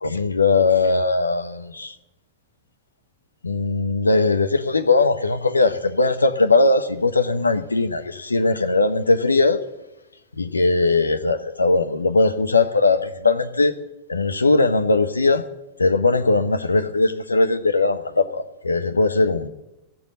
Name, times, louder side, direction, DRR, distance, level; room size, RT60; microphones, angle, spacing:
voice 1, 0.0-1.9 3.4-9.6 10.4-13.7 14.1-15.4 15.8-19.5, left 3 dB, 80° left, 0.8 m, -19 dB
15.0 x 7.0 x 7.7 m
figure-of-eight pair, 90°, 0 cm